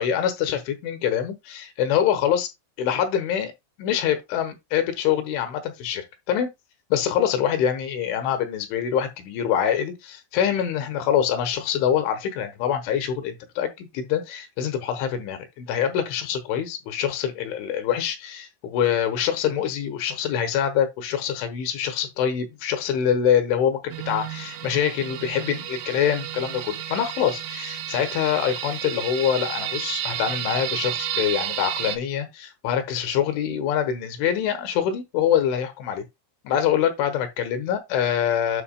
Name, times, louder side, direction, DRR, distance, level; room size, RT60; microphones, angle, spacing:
voice 1, 0.0-2.5 2.8-3.5 3.8-6.5 6.9-36.0 36.4-38.6, left 9 dB, 80° left, 3.3 m, -25 dB
sound 1, 23.9-32.0, right 11 dB, 75° right, 2.7 m, -32 dB
10.0 x 6.0 x 2.3 m
omnidirectional pair, 5.7 m